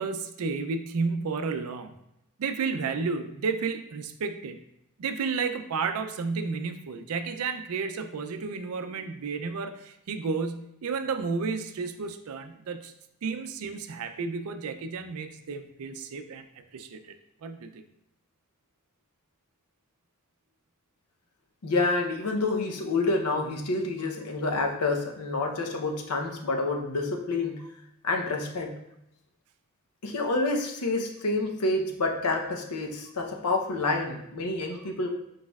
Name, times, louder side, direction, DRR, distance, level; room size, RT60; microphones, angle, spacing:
voice 1, 0.0-1.9 2.4-4.6 5.0-12.9 13.2-16.5 16.7-17.2 17.4-17.8, right 4 dB, 70° right, 8 dB, 0.4 m, -32 dB
voice 2, 21.6-27.6 28.0-28.7 30.0-35.1, left 2 dB, 85° left, 3 dB, 0.7 m, -28 dB
4.9 x 4.2 x 2.3 m, 0.82 s
head